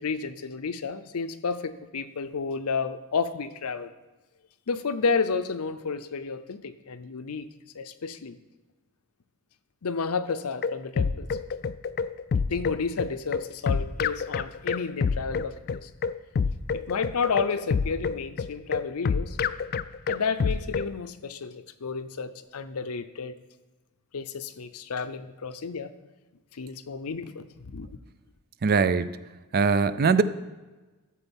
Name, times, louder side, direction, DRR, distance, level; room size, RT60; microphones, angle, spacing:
voice 1, 0.0-3.9 4.7-7.5 7.7-8.4 9.8-11.4 12.5-15.9 16.7-19.4 20.1-23.3 24.1-25.9 26.5-27.9, left 5 dB, 85° left, 12 dB, 0.6 m, -31 dB
sound 1, 10.3-20.9, left 5 dB, 45° left, 0.3 m, -28 dB
voice 2, 28.6-29.1 29.5-30.2, right 5 dB, 45° right, 14 dB, 0.5 m, -21 dB
13.0 x 4.4 x 7.2 m, 1.2 s
head